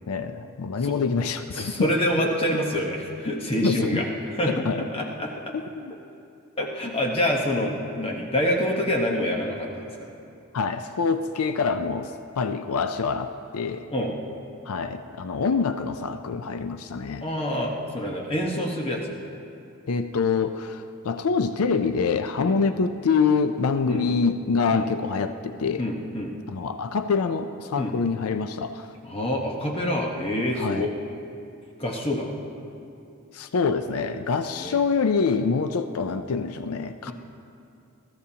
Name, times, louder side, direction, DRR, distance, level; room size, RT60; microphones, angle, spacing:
voice 1, 0.1-2.0 3.6-4.0 4.4-4.8 5.5-5.9 10.5-13.9 14.7-17.3 19.9-25.9 26.5-28.9 30.6-30.9 33.3-37.1, left 5 dB, 75° left, 9 dB, 0.5 m, -25 dB
voice 2, 1.5-4.1 4.4-5.6 6.6-10.1 13.9-14.1 17.2-19.1 22.4-22.6 23.9-24.1 24.7-24.9 25.8-26.3 27.8-27.9 29.0-30.9 31.8-32.4 34.5-34.8, left 1 dB, 25° left, 0 dB, 1.1 m, -26 dB
21.5 x 13.5 x 2.8 m, 2.7 s
head